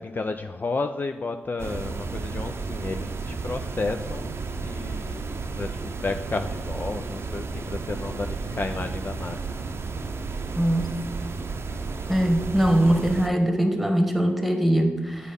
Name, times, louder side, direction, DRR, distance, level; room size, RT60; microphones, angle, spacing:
voice 1, 0.0-9.4, left 3 dB, 40° left, 6 dB, 0.4 m, -32 dB
sound 1, 1.6-13.3, right 4 dB, 55° right, 0.6 m, -33 dB
voice 2, 10.6-11.0 12.1-15.3, right 1 dB, ahead, 5 dB, 1.3 m, -22 dB
8.2 x 4.2 x 5.3 m, 1.4 s
supercardioid pair, 40°, 5 cm